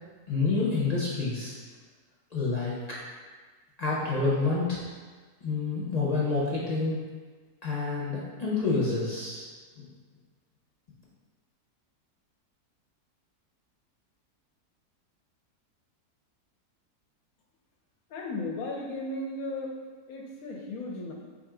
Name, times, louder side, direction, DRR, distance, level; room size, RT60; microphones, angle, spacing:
voice 1, 0.3-1.6 2.3-2.8 3.8-4.8 5.4-7.0 7.6-9.4 9.8-9.9, left 3 dB, 40° left, -6 dB, 0.6 m, -28 dB
voice 2, 18.1-21.1, left 2 dB, 70° left, 0 dB, 1.0 m, -36 dB
3.8 x 2.6 x 4.6 m, 1.4 s
omnidirectional pair, 1.7 m